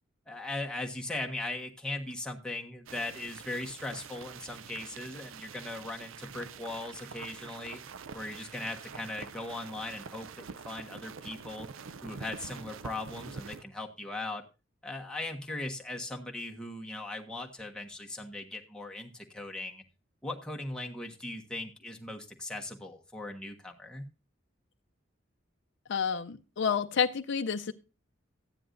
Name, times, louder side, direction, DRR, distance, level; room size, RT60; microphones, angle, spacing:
voice 1, 0.3-7.8 8.1-11.7 12.0-14.4 14.8-19.8 20.2-24.0, left 2 dB, 5° left, 0 dB, 1.3 m, -39 dB
sound 1, 2.9-13.6, right 6 dB, 80° right, 0.5 m, -46 dB
voice 2, 25.9-27.7, left 6 dB, 60° left, 7 dB, 0.5 m, -29 dB
14.0 x 9.8 x 2.6 m, 0.29 s
head